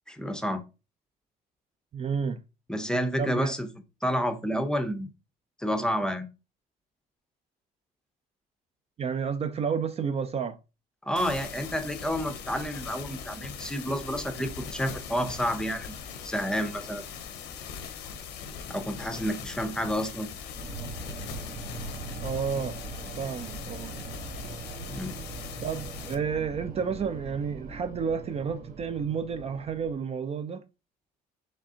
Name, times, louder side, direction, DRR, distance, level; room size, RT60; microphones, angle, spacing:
voice 1, 0.1-0.6 2.7-3.7 4.0-5.1 5.6-6.3 11.1-16.0 16.2-17.0 18.7-20.3 24.8-25.2, equal, 5° left, 0.6 m, -30 dB
voice 2, 1.9-2.4 3.2-3.5 9.0-10.6 22.2-22.8 23.2-24.0 25.6-30.6, right 6 dB, 35° right, 0.4 m, -31 dB
sound 1, 11.2-26.2, left 6 dB, 90° left, 0.8 m, -41 dB
sound 2, 20.6-29.9, right 3 dB, 55° right, 1.1 m, -41 dB
5.0 x 3.3 x 2.8 m
cardioid pair, 110°, 17 cm